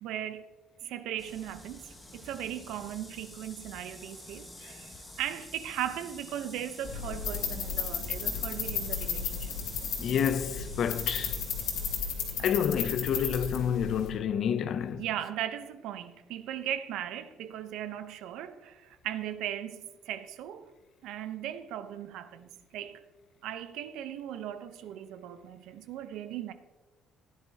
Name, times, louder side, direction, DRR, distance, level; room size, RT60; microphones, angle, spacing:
voice 1, 0.0-0.5 0.8-9.5 14.9-20.7 21.0-23.0 23.4-26.5, right 11 dB, 75° right, 0.8 m, -38 dB
sound 1, 1.2-12.0, left 1 dB, 10° left, 1.5 m, -48 dB
sound 2, 6.8-14.1, left 7 dB, 80° left, 2.7 m, -34 dB
voice 2, 10.0-11.4 12.4-15.0, left 8 dB, 45° left, 0.5 m, -29 dB
16.0 x 10.5 x 2.9 m
cardioid pair, 175°, 0 cm